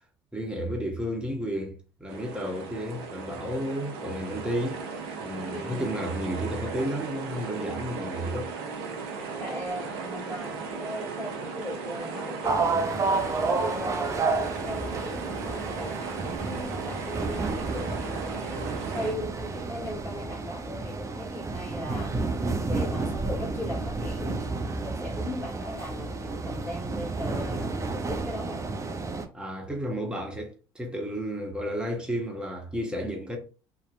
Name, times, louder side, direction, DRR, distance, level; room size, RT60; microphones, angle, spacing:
voice 1, 0.3-4.8 5.2-8.5 29.3-33.4, equal, 5° right, 0.9 m, -32 dB
sound 1, 2.1-19.1, right 4 dB, 80° right, 0.6 m, -36 dB
voice 2, 5.5-5.9 9.4-13.1 13.5-18.0 18.4-24.4 24.8-28.6, left 1 dB, 20° left, 1.5 m, -38 dB
sound 2, 12.4-29.3, right 3 dB, 25° right, 0.5 m, -31 dB
2.7 x 2.0 x 2.6 m
hypercardioid pair, 65°, 13 cm